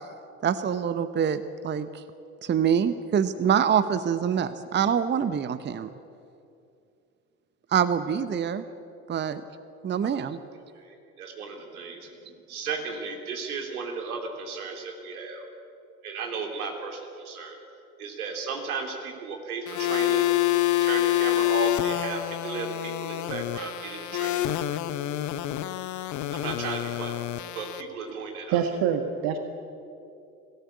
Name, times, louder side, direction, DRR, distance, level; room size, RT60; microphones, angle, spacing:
voice 1, 0.4-2.0 2.4-5.9 7.7-8.6 9.1-9.4 9.8-10.4, right 8 dB, 25° right, 13 dB, 0.9 m, -25 dB
voice 2, 10.7-12.1 12.5-15.4 16.0-17.6 18.0-20.3 20.8-24.4 24.6-24.8 26.3-27.2 27.5-28.6, right 4 dB, 75° right, 2 dB, 3.3 m, -35 dB
sound 1, 19.7-27.8, left 15 dB, 40° left, 1.0 m, -27 dB
voice 3, 28.5-29.4, right 8 dB, 55° right, 6 dB, 1.6 m, -25 dB
22.5 x 17.0 x 8.5 m, 2.6 s
figure-of-eight pair, 65°, 44 cm